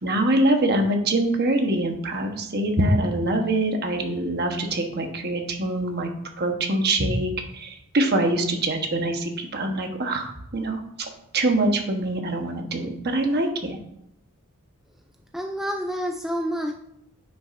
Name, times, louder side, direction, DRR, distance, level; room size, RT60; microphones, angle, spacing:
voice 1, 0.0-6.1 6.4-13.8, right 1 dB, 45° right, 4 dB, 1.2 m, -24 dB
voice 2, 15.3-16.7, equal, ahead, 2 dB, 0.4 m, -28 dB
10.0 x 6.1 x 2.6 m, 0.77 s
head